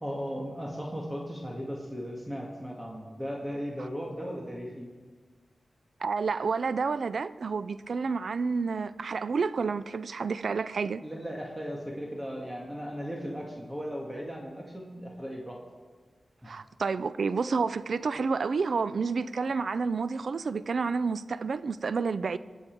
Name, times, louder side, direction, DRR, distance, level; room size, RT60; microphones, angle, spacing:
voice 1, 0.0-4.9 11.0-15.6 16.4-16.5, equal, 15° right, 1.7 m, -37 dB
voice 2, 6.0-11.0 16.5-22.4, right 4 dB, 70° right, 0.4 m, -29 dB
21.0 x 7.3 x 4.6 m
wide cardioid pair, 100°, 0 cm